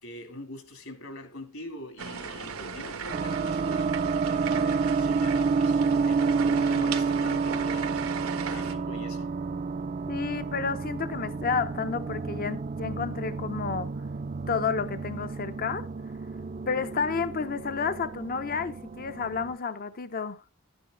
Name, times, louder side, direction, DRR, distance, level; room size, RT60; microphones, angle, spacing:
voice 1, 0.0-8.1 8.5-9.4, left 1 dB, 70° left, 2.8 m, -44 dB
sound 1, 2.0-8.7, right 5 dB, 90° right, 1.6 m, -37 dB
sound 2, 3.1-19.6, right 4 dB, 40° right, 0.5 m, -29 dB
voice 2, 10.1-13.9 14.5-15.9 16.7-20.4, left 5 dB, 45° left, 0.7 m, -31 dB
12.0 x 9.8 x 3.8 m
head